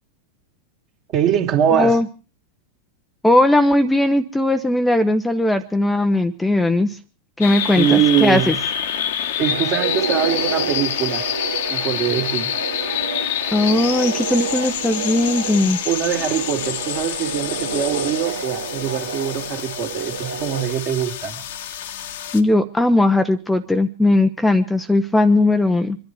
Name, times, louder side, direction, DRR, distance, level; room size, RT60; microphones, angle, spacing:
voice 1, 1.1-2.0 7.8-8.6 9.4-11.3 11.7-12.5 15.8-21.4, right 9 dB, 40° right, 4 dB, 2.6 m, -22 dB
voice 2, 1.7-2.1 3.2-7.0 7.4-8.5 13.5-15.8 22.3-26.0, left 2 dB, 5° left, 7 dB, 0.8 m, -18 dB
sound 1, 7.4-22.4, left 10 dB, 55° left, 1.3 m, -27 dB
sound 2, 9.5-20.8, right 5 dB, 70° right, 1.2 m, -30 dB
25.5 x 11.0 x 4.6 m, 0.36 s
figure-of-eight pair, 90°, 0 cm